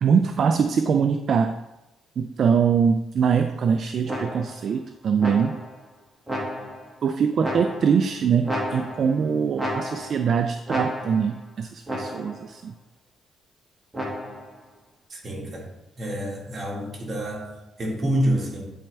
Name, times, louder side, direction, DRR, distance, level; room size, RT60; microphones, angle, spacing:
voice 1, 0.0-1.6 2.2-5.6 7.0-12.7, right 6 dB, 55° right, 8 dB, 0.3 m, -23 dB
sound 1, 4.1-4.7 5.2-5.8 6.3-6.9 7.4-8.1 8.4-9.2 9.6-10.3 10.7-11.4 11.9-12.5 13.9-14.5, equal, 15° right, 1.9 m, -32 dB
voice 2, 15.1-18.7, equal, 40° right, -1 dB, 1.9 m, -28 dB
8.8 x 4.3 x 3.3 m, 0.96 s
cardioid pair, 90°, 0 cm